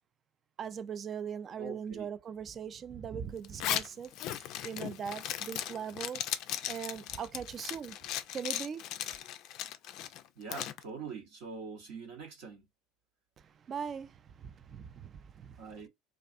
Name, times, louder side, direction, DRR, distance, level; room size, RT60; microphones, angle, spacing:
voice 1, 0.6-6.2 6.7-8.0 8.3-8.8 13.4-15.9, right 7 dB, 40° right, 0.3 m, -40 dB
voice 2, 1.6-2.1 10.4-12.6 15.6-15.9, right 5 dB, 65° right, 0.9 m, -44 dB
Zipper (clothing), 3.4-10.8, left 11 dB, 55° left, 0.3 m, -37 dB
2.4 x 2.4 x 2.4 m
hypercardioid pair, 70°, 0 cm